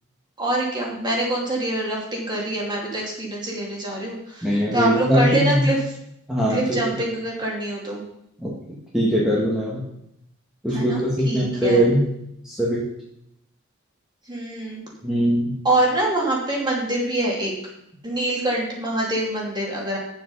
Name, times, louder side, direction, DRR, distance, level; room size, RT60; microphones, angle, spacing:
voice 1, 0.4-5.8 6.5-8.0 10.7-11.8 14.3-14.8 15.6-17.5 18.0-20.0, right 1 dB, 20° right, -2 dB, 2.7 m, -25 dB
voice 2, 4.4-5.7 6.3-6.8 8.4-9.8 10.6-12.1 12.4-12.8 15.0-15.6, equal, 5° right, -7 dB, 1.9 m, -21 dB
9.2 x 7.4 x 5.6 m, 0.77 s
head